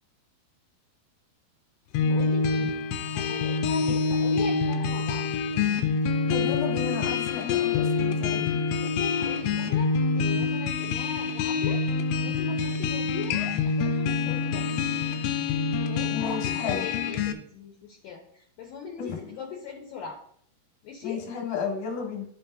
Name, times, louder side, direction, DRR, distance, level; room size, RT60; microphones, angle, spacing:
sound 1, 2.0-17.3, left 5 dB, 90° left, 2.8 m, -26 dB
voice 1, 2.1-2.8 3.1-5.3 8.7-14.7 15.8-20.2 20.8-21.2, left 5 dB, 70° left, 0 dB, 2.4 m, -40 dB
voice 2, 6.3-8.6 16.1-16.9 19.0-19.2 21.0-22.2, left 6 dB, 55° left, 0 dB, 2.4 m, -33 dB
12.0 x 5.2 x 2.6 m, 0.64 s
omnidirectional pair, 4.8 m